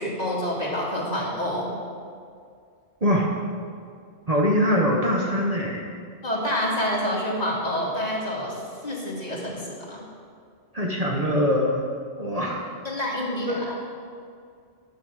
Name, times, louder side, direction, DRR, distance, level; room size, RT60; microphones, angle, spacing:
voice 1, 0.0-1.7 6.2-10.0 12.8-13.8, equal, 35° left, -5 dB, 2.3 m, -28 dB
voice 2, 4.3-5.8 10.7-11.9 12.2-12.6 13.5-13.6, equal, 35° right, -2 dB, 1.2 m, -23 dB
11.0 x 7.6 x 6.4 m, 2.3 s
omnidirectional pair, 1.2 m